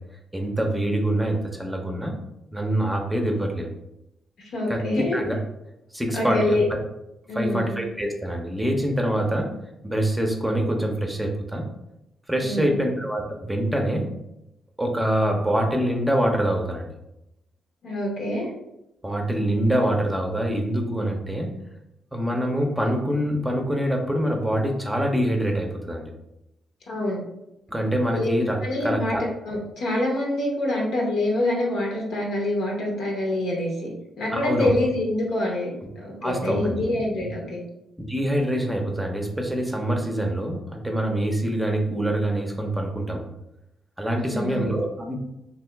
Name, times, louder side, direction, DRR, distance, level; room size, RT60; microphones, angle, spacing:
voice 1, 0.3-2.2 2.5-3.7 4.7-4.8 5.1-5.4 5.9-6.6 7.3-9.5 9.8-11.6 12.3-14.1 14.8-17.0 19.0-21.5 22.1-26.1 27.7-29.2 34.3-34.7 36.2-36.8 38.1-43.3 44.0-45.2, right 1 dB, 10° right, 2 dB, 0.6 m, -25 dB
voice 2, 4.4-5.2 6.1-6.6 7.3-7.8 12.4-12.8 17.8-18.5 26.9-27.2 28.1-28.3 28.6-33.9 34.2-37.6 44.2-44.8, left 1 dB, 80° left, -2 dB, 1.0 m, -26 dB
2.8 x 2.5 x 3.4 m, 0.88 s
cardioid pair, 65°, 0 cm